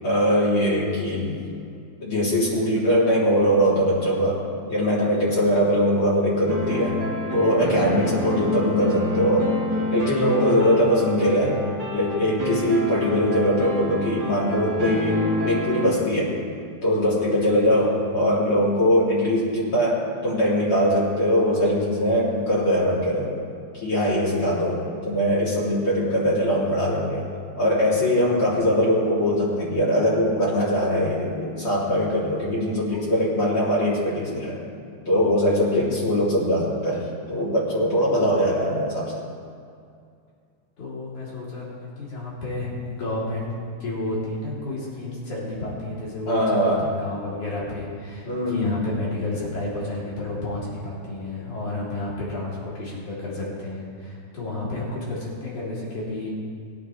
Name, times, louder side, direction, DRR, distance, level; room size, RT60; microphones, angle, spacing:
voice 1, 0.0-1.4 2.0-4.4 4.7-7.0 7.3-9.6 9.9-11.6 11.9-16.4 16.8-23.4 23.7-27.3 27.6-34.6 35.1-39.2 46.3-46.9 48.3-48.8, equal, 40° left, -7 dB, 3.8 m, -21 dB
sound 1, 6.5-15.9, equal, 5° right, 1.8 m, -29 dB
voice 2, 40.8-43.5 43.8-56.3, left 2 dB, 70° left, -7 dB, 4.7 m, -31 dB
21.0 x 9.5 x 3.3 m, 2.4 s
omnidirectional pair, 3.5 m